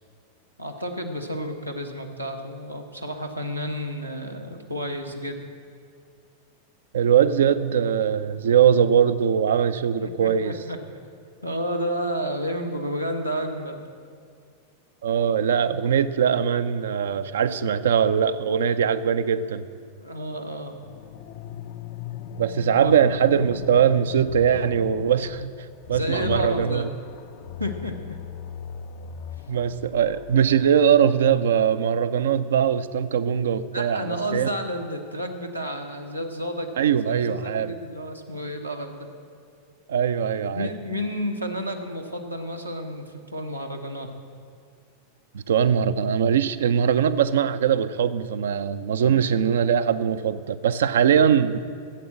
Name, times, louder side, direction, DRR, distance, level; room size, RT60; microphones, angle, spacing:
voice 1, 0.6-5.4 10.0-10.8 11.4-13.8 20.0-20.8 22.8-23.0 25.9-26.9 27.6-28.2 33.7-39.1 40.5-44.1 49.0-49.4, equal, 90° right, 2 dB, 1.1 m, -31 dB
voice 2, 6.9-10.5 15.0-19.7 22.4-25.5 25.9-26.9 29.5-34.5 36.8-37.7 39.9-40.7 45.3-51.6, right 8 dB, 60° right, 13 dB, 0.5 m, -21 dB
sound 1, 20.8-30.7, left 9 dB, 45° left, 0.5 m, -38 dB
13.0 x 8.5 x 7.5 m, 2.2 s
figure-of-eight pair, 90°, 0 cm